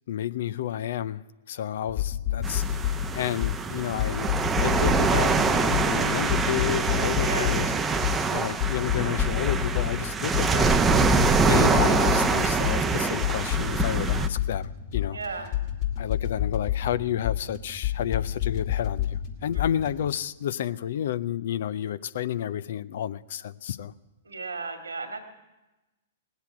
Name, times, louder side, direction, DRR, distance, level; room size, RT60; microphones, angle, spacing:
voice 1, 0.1-1.2 1.5-7.7 7.9-10.8 11.5-15.2 16.0-23.9, left 11 dB, 60° left, 0.5 m, -31 dB
sound 1, 2.0-20.1, left 11 dB, 45° left, 2.6 m, -29 dB
sound 2, 2.4-14.3, right 4 dB, 15° right, 0.7 m, -24 dB
voice 2, 7.2-7.6 15.1-15.6 19.5-20.0 21.8-21.9 24.2-25.2, right 3 dB, 85° right, 1.9 m, -36 dB
18.5 x 8.2 x 8.6 m
figure-of-eight pair, 110°, 0 cm